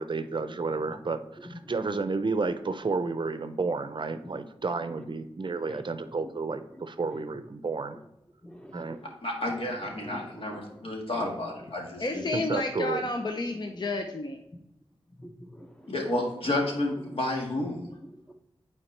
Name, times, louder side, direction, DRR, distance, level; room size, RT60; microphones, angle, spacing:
voice 1, 0.0-8.0 8.7-9.0 12.3-13.1, right 4 dB, 50° right, 9 dB, 0.5 m, -31 dB
voice 2, 1.4-1.7 5.0-5.1 5.7-5.8 6.7-7.2 8.4-9.1 9.4-10.8 11.1-11.3 11.6-11.7 15.2-16.1 16.4-16.6 17.0-17.2 18.0-18.3, equal, 10° left, 4 dB, 0.8 m, -47 dB
voice 3, 9.2-12.2 15.9-17.9, left 1 dB, 65° left, -1 dB, 1.7 m, -31 dB
voice 4, 12.0-14.4, left 2 dB, 45° left, 4 dB, 0.6 m, -31 dB
8.8 x 4.4 x 3.2 m, 0.83 s
wide cardioid pair, 80°, 10 cm